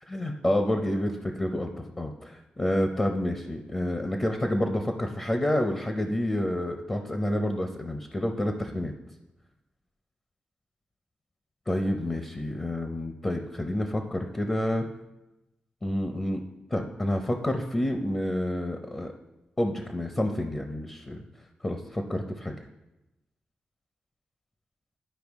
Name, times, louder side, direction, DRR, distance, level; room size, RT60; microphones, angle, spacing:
voice 1, 0.1-8.9 11.7-14.9 15.8-16.4 16.7-19.1 19.6-21.2 21.6-22.5, left 1 dB, 25° left, 4 dB, 0.7 m, -29 dB
11.0 x 4.7 x 3.5 m, 0.97 s
cardioid pair, 90°, 3 cm